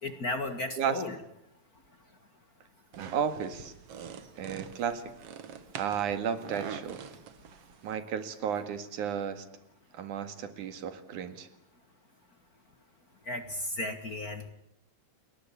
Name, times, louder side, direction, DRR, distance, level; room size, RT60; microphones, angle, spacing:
voice 1, 0.0-1.2 13.3-14.5, left 2 dB, 35° left, 9 dB, 1.7 m, -34 dB
sound 1, 2.9-8.0, right 8 dB, 55° right, 2.3 m, -44 dB
voice 2, 3.0-3.7 4.4-5.1 5.8-7.0 7.8-9.5 9.9-11.5, right 7 dB, 85° right, 10 dB, 3.4 m, -33 dB
30.0 x 21.0 x 8.6 m, 0.77 s
omnidirectional pair, 3.4 m